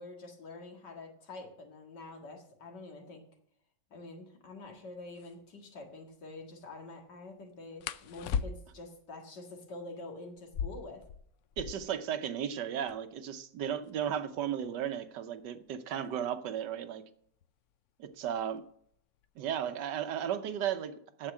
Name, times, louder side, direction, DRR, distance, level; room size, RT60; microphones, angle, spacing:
voice 1, 0.0-3.2 3.9-11.0, left 2 dB, 75° left, 3 dB, 2.5 m, -47 dB
sound 1, 4.6-4.7 5.1-5.3 7.8-8.9 10.4-12.0 12.3-12.4 12.6-13.2 13.8-16.4 17.4-17.7 18.1-18.6 18.9-19.6, left 7 dB, 90° left, 0.6 m, -39 dB
voice 2, 11.6-17.0 18.0-18.6 19.4-21.3, right 9 dB, 75° right, 11 dB, 1.4 m, -35 dB
9.2 x 7.5 x 7.5 m, 0.66 s
omnidirectional pair, 1.9 m